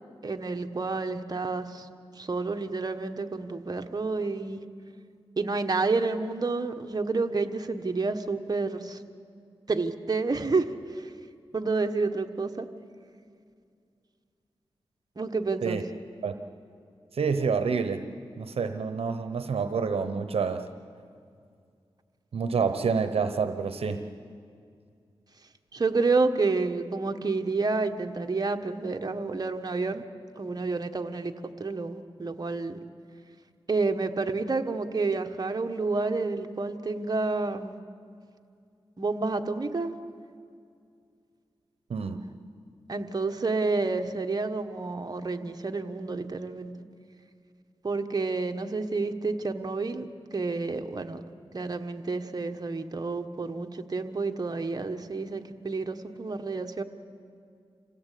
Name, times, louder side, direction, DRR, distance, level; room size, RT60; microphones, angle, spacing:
voice 1, 0.2-1.9 2.2-4.6 5.4-9.0 9.7-11.1 11.5-12.7 15.2-15.8 25.7-30.0 30.4-32.8 33.7-37.8 39.0-39.9 42.9-46.7 47.8-50.1 50.3-51.2 51.5-56.8, right 3 dB, 40° right, 5 dB, 1.3 m, -29 dB
voice 2, 17.1-18.1 18.4-20.7 22.3-24.0 41.9-42.2, right 5 dB, 75° right, 9 dB, 0.9 m, -28 dB
26.5 x 16.5 x 8.4 m, 2.3 s
cardioid pair, 60°, 10 cm